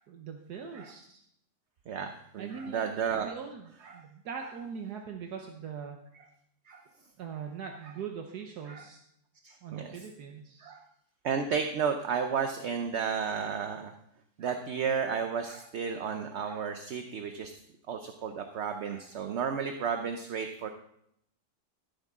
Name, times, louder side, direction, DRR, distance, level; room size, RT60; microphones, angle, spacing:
voice 1, 0.1-1.2 2.4-2.9 3.2-6.0 7.2-9.0 9.6-10.7, right 6 dB, 75° right, 3 dB, 1.5 m, -41 dB
voice 2, 1.9-3.4 3.8-4.0 6.7-6.8 8.7-8.9 9.4-9.9 10.6-10.8 11.2-13.9 14.4-17.5 17.9-20.7, right 6 dB, 55° right, 6 dB, 0.8 m, -33 dB
14.0 x 8.9 x 3.7 m, 0.74 s
omnidirectional pair, 1.7 m